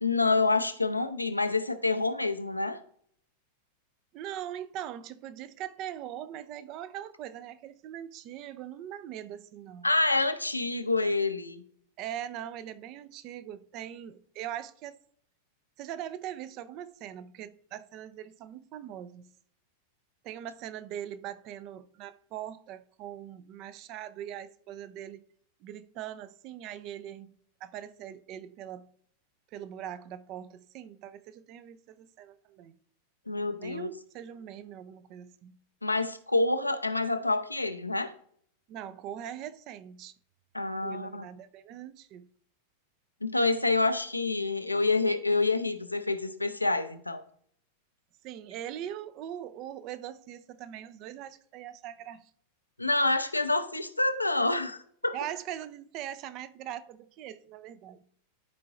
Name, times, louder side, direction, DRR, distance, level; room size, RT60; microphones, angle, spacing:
voice 1, 0.0-2.8 9.8-11.6 33.3-33.9 35.8-38.1 40.5-41.3 43.2-47.2 52.8-55.2, left 3 dB, 85° left, 0.6 m, -27 dB
voice 2, 4.1-9.9 12.0-15.0 15.8-19.3 20.2-25.2 25.6-27.3 27.6-28.9 29.5-32.8 33.6-35.6 38.7-40.1 40.8-42.3 48.2-52.3 55.1-58.0, right 11 dB, 40° right, 0.5 m, -41 dB
11.5 x 4.7 x 2.5 m
figure-of-eight pair, 90°, 0 cm